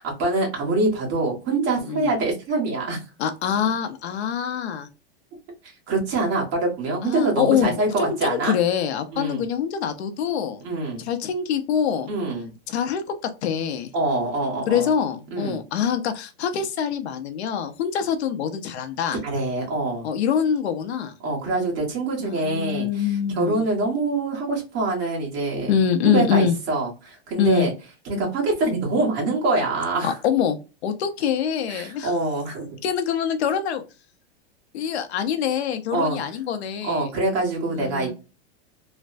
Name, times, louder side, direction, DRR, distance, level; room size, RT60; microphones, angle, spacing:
voice 1, 0.2-3.0 5.9-8.6 9.1-9.4 10.6-11.1 12.1-12.5 13.9-14.9 15.3-15.6 19.2-20.1 21.2-25.7 26.1-27.7 28.0-30.1 31.7-32.8 35.9-36.2 36.8-38.1, right 2 dB, 35° right, -1 dB, 1.4 m, -25 dB
voice 2, 3.2-4.9 7.0-10.6 11.0-12.1 12.7-13.0 13.4-13.9 14.7-19.2 20.0-21.1 22.2-23.6 25.7-26.5 27.4-27.7 30.0-32.1 32.8-33.8 34.7-37.1 37.7-38.1, left 8 dB, 90° left, 8 dB, 0.7 m, -24 dB
3.2 x 2.1 x 2.5 m, 0.30 s
supercardioid pair, 165°, 32 cm